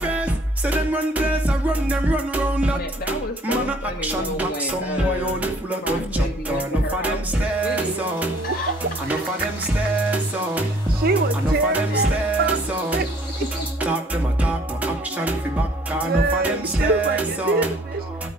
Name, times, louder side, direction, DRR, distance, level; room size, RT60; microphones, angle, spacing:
voice 1, 0.7-1.4 1.9-2.5 3.5-3.6 5.2-5.3 5.9-6.0 6.5-6.6 7.0-7.1 7.4-7.8 9.4-9.5 9.8-10.1 10.4-10.5 12.2-12.5 13.9-14.0 16.4-16.5 16.9-17.2 17.4-17.5, right 2 dB, 10° right, 2.5 m, -22 dB
voice 2, 2.7-5.4 5.8-8.0 8.4-8.8 11.9-12.2 13.6-13.7, left 2 dB, 50° left, 2.2 m, -31 dB
sound 1, 7.5-13.7, left 2 dB, 25° left, 4.5 m, -41 dB
voice 3, 7.8-9.7 10.9-12.6 12.9-13.0 13.4-13.5 15.2-15.4 16.0-18.0, right 3 dB, 50° right, 1.1 m, -25 dB
13.0 x 9.4 x 5.1 m
head